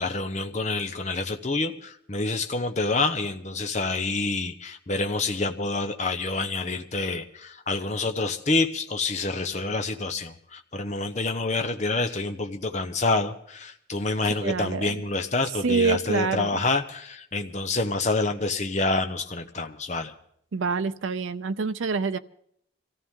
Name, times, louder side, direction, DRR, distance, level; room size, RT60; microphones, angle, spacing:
voice 1, 0.0-20.1, left 3 dB, 35° left, 7 dB, 0.8 m, -27 dB
voice 2, 14.4-15.0 15.6-16.6 20.5-22.2, right 5 dB, 80° right, 11 dB, 0.6 m, -26 dB
24.0 x 14.5 x 3.7 m, 0.68 s
head